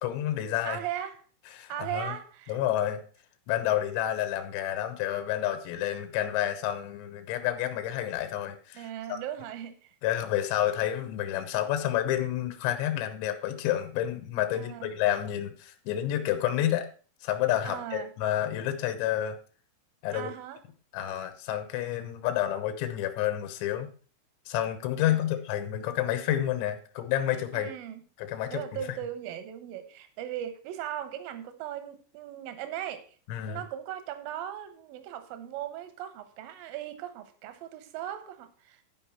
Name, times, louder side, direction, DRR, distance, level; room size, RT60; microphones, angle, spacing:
voice 1, 0.0-0.8 1.5-2.2 2.5-3.0 3.5-9.2 10.0-16.9 17.2-19.4 20.0-20.3 20.9-23.9 24.5-27.7 28.2-28.8 33.3-33.6, left 12 dB, 75° left, 9 dB, 3.1 m, -29 dB
voice 2, 0.7-1.2 1.7-2.6 8.7-9.9 14.5-14.9 17.6-18.1 20.1-20.6 25.1-25.3 27.5-28.0 28.5-33.0 33.5-38.8, right 11 dB, 75° right, 10 dB, 2.2 m, -38 dB
11.5 x 5.5 x 5.7 m, 0.40 s
omnidirectional pair, 5.6 m